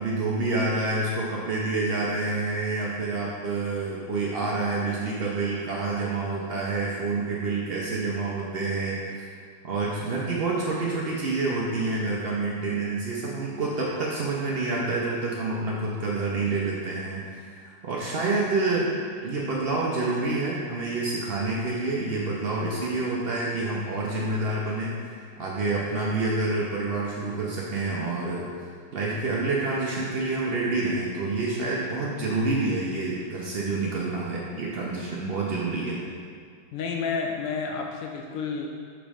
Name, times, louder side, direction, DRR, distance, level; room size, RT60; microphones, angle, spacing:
voice 1, 0.0-9.1 9.6-18.9 19.2-28.5 28.9-36.0, right 3 dB, 90° right, -4 dB, 0.5 m, -28 dB
voice 2, 36.7-38.7, left 5 dB, 85° left, 1 dB, 0.7 m, -30 dB
6.4 x 3.0 x 4.9 m, 2.1 s
omnidirectional pair, 2.0 m